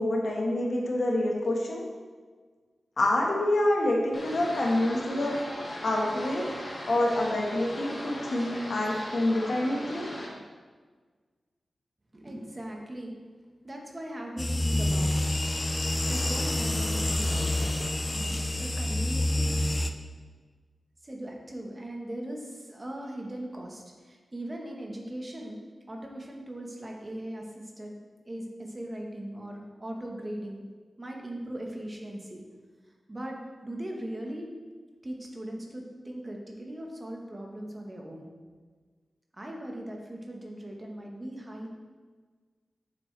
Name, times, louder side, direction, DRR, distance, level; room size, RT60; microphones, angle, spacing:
voice 1, 0.0-1.8 3.0-5.3 5.8-6.5 6.9-10.1, left 1 dB, 60° left, -1 dB, 1.4 m, -27 dB
sound 1, 4.1-10.3, left 1 dB, 40° left, 1.7 m, -39 dB
voice 2, 12.1-13.2 13.6-15.1 16.1-17.8 18.1-19.7 21.0-25.6 25.9-30.6 31.0-32.4 33.1-34.5 35.0-38.3 39.3-41.7, right 1 dB, 20° right, 0 dB, 1.3 m, -39 dB
sound 2, 14.4-19.9, left 1 dB, 20° left, 0.4 m, -27 dB
8.8 x 7.3 x 3.3 m, 1.5 s
wide cardioid pair, 140°, 0 cm